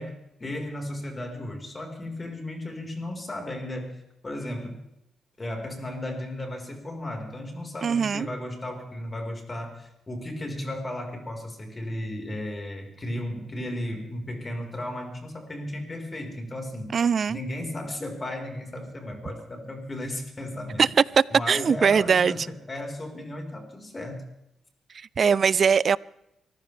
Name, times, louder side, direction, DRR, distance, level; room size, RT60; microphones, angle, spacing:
voice 1, 0.0-4.8 5.4-16.9 17.3-20.8 21.3-24.3, left 1 dB, 30° left, 4.7 m, -35 dB
voice 2, 7.8-8.3 16.9-17.4 20.8-20.9 21.2-22.3 24.9-26.0, right 6 dB, 50° right, 0.5 m, -21 dB
24.5 x 15.5 x 3.5 m
cardioid pair, 75°, 0 cm